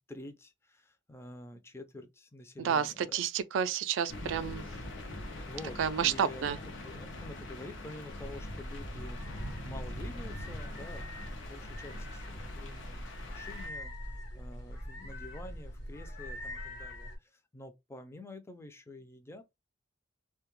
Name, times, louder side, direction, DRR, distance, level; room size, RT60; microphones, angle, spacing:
voice 1, 0.0-3.2 5.5-19.5, left 1 dB, 15° left, 0.4 m, -48 dB
voice 2, 2.6-4.6 5.8-6.6, right 8 dB, 85° right, 0.3 m, -30 dB
sound 1, 4.1-13.7, left 1 dB, 85° left, 0.7 m, -43 dB
sound 2, 8.1-17.2, equal, 60° left, 0.9 m, -43 dB
2.2 x 2.1 x 2.9 m
head